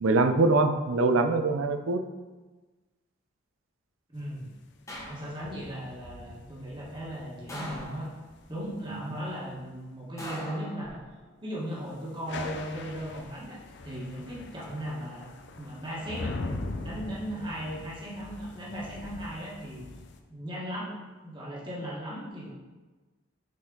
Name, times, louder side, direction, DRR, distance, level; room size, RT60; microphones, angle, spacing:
voice 1, 0.0-2.0 8.9-9.0, right 3 dB, 85° right, 8 dB, 0.5 m, -23 dB
sound 1, 4.1-9.6 12.1-20.2, left 2 dB, 55° left, 0.5 m, -42 dB
voice 2, 4.1-4.5 5.1-8.1 8.5-11.0 11.4-15.3 15.6-16.3 16.8-19.8 20.3-20.9 21.2-22.5, equal, 25° right, -6 dB, 1.4 m, -37 dB
sound 2, 4.9-5.7 7.5-8.4 10.2-11.3 12.7-13.3, equal, 15° left, 0.9 m, -42 dB
6.1 x 4.3 x 3.9 m, 1.2 s
head